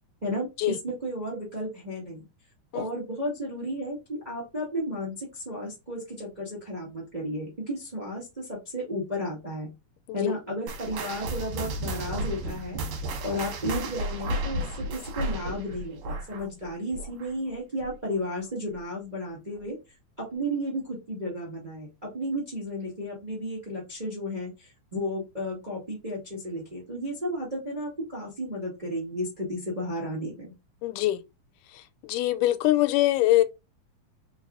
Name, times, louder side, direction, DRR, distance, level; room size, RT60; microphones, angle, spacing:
voice 1, 0.2-2.3 2.7-9.7 10.1-12.8 13.2-19.8 20.2-30.5, equal, 25° right, 1.0 m, -33 dB
sound 1, 10.7-17.5 17.8-18.1 18.7-18.8 19.6-19.7, right 1 dB, 75° right, 2.4 m, -33 dB
voice 2, 30.8-31.2 32.1-33.4, left 15 dB, 90° left, 2.1 m, -23 dB
4.6 x 4.0 x 2.4 m
omnidirectional pair, 3.6 m